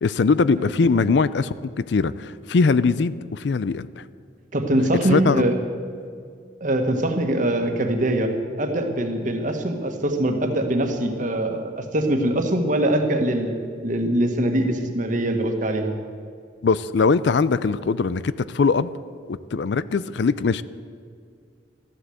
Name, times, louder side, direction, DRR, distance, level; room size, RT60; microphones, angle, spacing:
voice 1, 0.0-4.0 5.1-5.4 16.6-18.9 19.3-20.6, left 4 dB, 65° left, 16 dB, 0.4 m, -21 dB
voice 2, 4.5-5.5 6.6-8.3 8.6-13.5 13.8-16.0, right 1 dB, 45° right, 4 dB, 1.6 m, -23 dB
13.5 x 11.5 x 7.8 m, 2.2 s
head